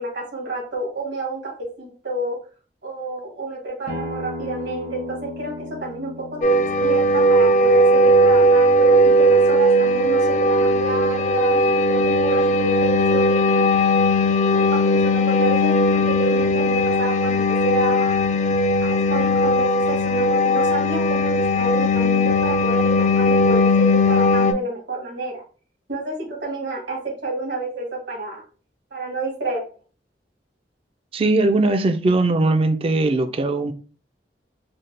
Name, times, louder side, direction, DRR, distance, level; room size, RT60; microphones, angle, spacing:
voice 1, 0.0-1.5 1.8-2.4 2.8-5.5 5.8-11.6 11.9-13.7 14.2-18.2 18.8-25.4 25.9-28.4 28.9-29.6, right 2 dB, 75° right, 1.7 m, -29 dB
Acoustic guitar, 3.9-9.1, left 1 dB, 55° right, 0.8 m, -36 dB
sound 1, 6.4-24.5, left 1 dB, 45° left, 0.3 m, -18 dB
voice 2, 31.1-33.7, right 2 dB, 35° right, 0.3 m, -19 dB
4.1 x 2.1 x 3.2 m
head